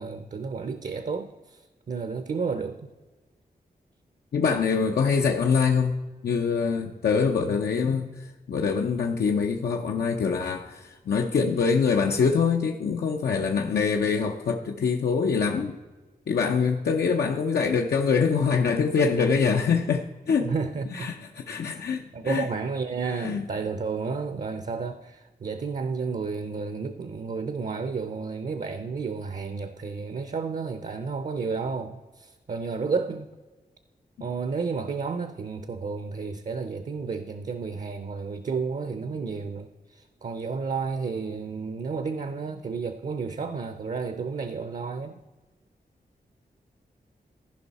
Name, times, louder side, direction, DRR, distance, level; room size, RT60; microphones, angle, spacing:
voice 1, 0.0-1.6 1.9-2.9 20.4-21.1 21.7-33.3 34.2-45.2, right 4 dB, 50° right, 9 dB, 0.6 m, -32 dB
voice 2, 4.3-6.0 6.2-15.7 16.3-20.5 20.9-22.5 23.2-23.4, left 5 dB, 90° left, 2 dB, 0.7 m, -24 dB
15.0 x 5.4 x 4.1 m, 1.2 s
wide cardioid pair, 115°, 16 cm